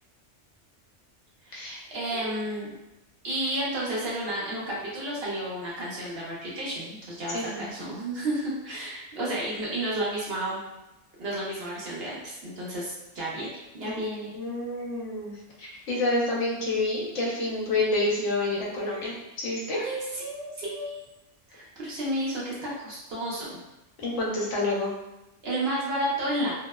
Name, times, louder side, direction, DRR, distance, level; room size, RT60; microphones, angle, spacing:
voice 1, 1.4-2.7 3.2-10.6 11.2-13.5 13.7-14.3 19.7-20.9 21.5-23.6 25.4-26.5, right 1 dB, 60° right, -6 dB, 0.9 m, -31 dB
voice 2, 7.3-7.7 13.8-14.0 14.3-19.8 24.0-24.9, left 2 dB, 80° left, -4 dB, 1.0 m, -28 dB
2.7 x 2.0 x 2.2 m, 0.98 s
omnidirectional pair, 1.2 m